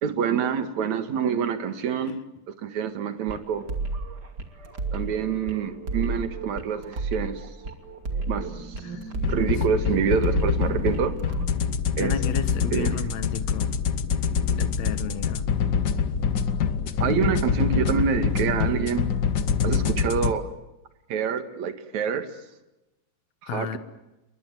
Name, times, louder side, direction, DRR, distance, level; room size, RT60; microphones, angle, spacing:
voice 1, 0.0-2.2 2.5-3.7 4.9-7.5 8.3-8.8 9.3-11.2 12.0-12.1 12.7-13.0 17.0-19.1 19.6-20.5 21.1-22.3 23.4-23.8, right 7 dB, 65° right, 9 dB, 3.0 m, -26 dB
sound 1, 3.2-11.5, right 3 dB, 35° right, 2.9 m, -32 dB
sound 2, 9.1-20.3, left 6 dB, 80° left, 0.9 m, -25 dB
voice 2, 12.0-13.8 14.5-15.4 23.5-23.8, left 8 dB, 65° left, 11 dB, 2.5 m, -33 dB
29.5 x 23.0 x 7.7 m, 0.98 s
omnidirectional pair, 3.6 m